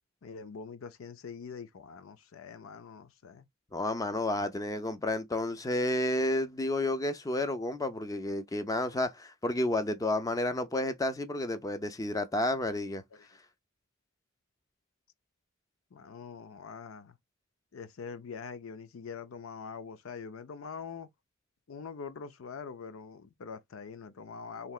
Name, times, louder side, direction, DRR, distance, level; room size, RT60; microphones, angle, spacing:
voice 1, 0.2-3.5 13.1-13.3 15.9-17.2 17.7-21.1 21.7-24.7, left 5 dB, 80° left, 0.5 m, -44 dB
voice 2, 3.7-13.0, left 1 dB, 15° left, 0.5 m, -31 dB
3.2 x 2.8 x 2.3 m
head